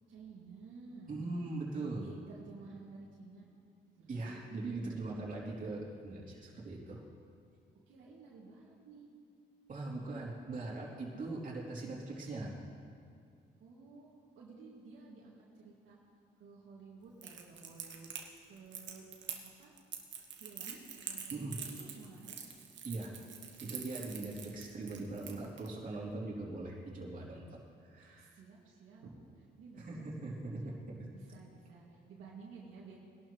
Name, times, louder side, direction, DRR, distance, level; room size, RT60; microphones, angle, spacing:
voice 1, 0.1-1.2 1.8-3.5 4.0-5.0 7.9-9.1 13.6-14.1 14.4-16.0 16.4-19.0 19.6-19.7 20.4-22.4 24.0-24.5 28.2-30.7 31.1-33.0, right 4 dB, 85° right, -5 dB, 2.4 m, -54 dB
voice 2, 1.1-2.1 4.1-7.0 9.7-12.5 21.3-21.6 22.8-23.1 23.6-28.3 29.8-31.0, right 2 dB, 40° right, -5 dB, 3.4 m, -41 dB
Crackle, 17.2-25.7, right 7 dB, 65° right, 1.5 m, -45 dB
20.5 x 11.5 x 3.2 m, 2.4 s
cardioid pair, 90°, 20 cm